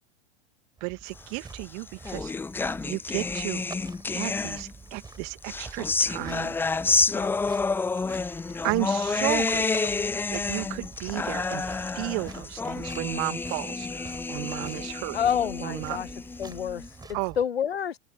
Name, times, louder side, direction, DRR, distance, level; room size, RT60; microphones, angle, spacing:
sound 1, 0.8-17.4, right 4 dB, 10° right, 4.5 m, -46 dB
voice 1, 0.8-2.3 2.8-3.6 4.1-6.6 8.6-9.9 10.3-15.2 15.6-16.0 17.1-17.4, right 40 dB or more, 45° right, 2.6 m, -33 dB
sound 2, 1.5-4.9 5.4-16.9, left 4 dB, 5° left, 0.6 m, -29 dB
voice 2, 15.1-16.1 16.4-16.9 17.4-18.0, left 8 dB, 75° left, 1.1 m, -28 dB
figure-of-eight pair, 95°, 31 cm